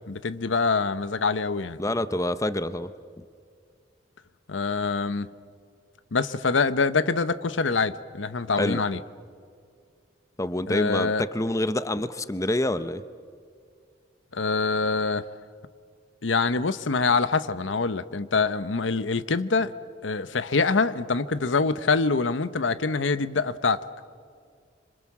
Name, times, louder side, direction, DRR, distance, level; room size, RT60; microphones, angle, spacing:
voice 1, 0.1-1.8 4.5-5.3 6.1-9.0 10.7-11.2 14.3-15.3 16.2-19.7 20.0-23.8, left 4 dB, 85° left, 13 dB, 0.9 m, -25 dB
voice 2, 1.8-2.9 8.6-8.8 10.4-13.0, left 1 dB, 15° left, 12 dB, 0.7 m, -27 dB
27.0 x 25.5 x 7.4 m, 2.2 s
head